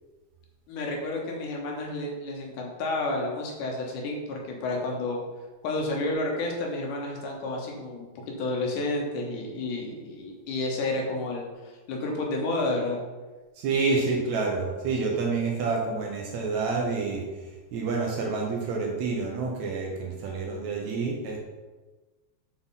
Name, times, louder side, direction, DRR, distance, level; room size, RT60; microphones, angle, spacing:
voice 1, 0.7-5.2 5.6-8.1 8.4-11.4 11.9-13.0 13.7-14.1, left 2 dB, 75° left, 0 dB, 2.5 m, -30 dB
voice 2, 13.6-17.3 17.7-21.4, right 4 dB, 70° right, 0 dB, 2.0 m, -28 dB
7.3 x 4.2 x 4.0 m, 1.2 s
omnidirectional pair, 3.7 m